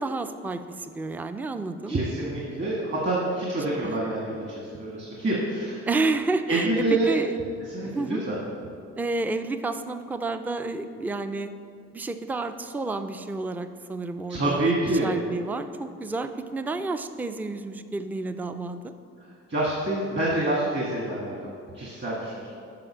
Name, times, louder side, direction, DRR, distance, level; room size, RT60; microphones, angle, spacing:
voice 1, 0.0-2.0 3.7-4.0 5.9-7.3 7.8-8.2 9.0-11.5 11.9-14.7 15.0-18.9, right 3 dB, 5° right, 9 dB, 0.3 m, -30 dB
voice 2, 1.9-5.9 6.5-7.1 7.7-8.4 14.3-15.1 19.5-22.5, right 2 dB, 40° right, -4 dB, 1.6 m, -27 dB
7.7 x 5.0 x 6.1 m, 2.3 s
cardioid pair, 90°, 30 cm